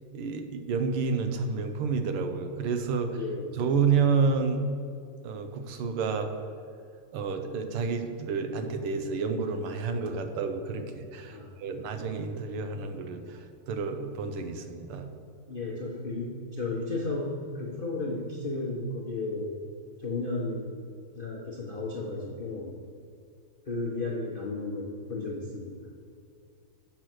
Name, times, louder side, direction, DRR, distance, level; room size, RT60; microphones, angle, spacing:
voice 1, 0.1-3.2 3.6-4.7 5.2-6.3 7.1-15.1, right 5 dB, 85° right, 7 dB, 1.7 m, -29 dB
voice 2, 3.0-3.6 11.3-11.9 15.5-19.5 20.0-20.7 21.1-22.7 23.6-25.7, left 2 dB, 40° left, -3 dB, 0.7 m, -34 dB
7.8 x 6.4 x 6.1 m, 2.4 s
omnidirectional pair, 2.4 m